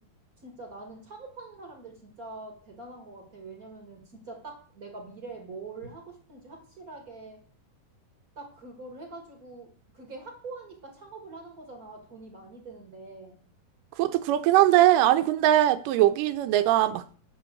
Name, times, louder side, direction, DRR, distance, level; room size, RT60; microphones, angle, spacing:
voice 1, 0.4-7.4 8.3-13.4, right 3 dB, 45° right, 1.2 m, -44 dB
voice 2, 14.0-17.0, right 13 dB, 85° right, 1.9 m, -21 dB
7.0 x 5.9 x 7.6 m
omnidirectional pair, 4.4 m